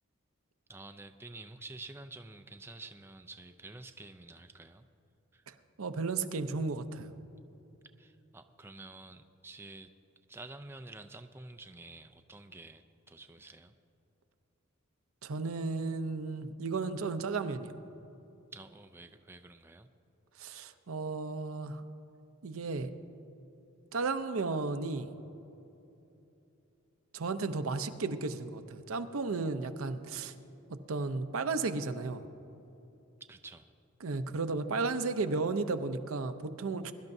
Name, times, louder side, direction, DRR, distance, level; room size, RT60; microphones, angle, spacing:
voice 1, 0.7-4.8 5.3-5.4 8.0-9.9 10.3-13.7 18.5-19.9 33.3-33.7, right 2 dB, 10° right, 7 dB, 0.4 m, -49 dB
voice 2, 5.5-7.1 15.2-17.8 20.4-21.8 22.4-22.9 23.9-25.1 27.1-30.3 30.9-32.2 34.0-36.9, right 3 dB, 75° right, 9 dB, 0.6 m, -34 dB
22.5 x 12.0 x 2.7 m, 2.9 s
head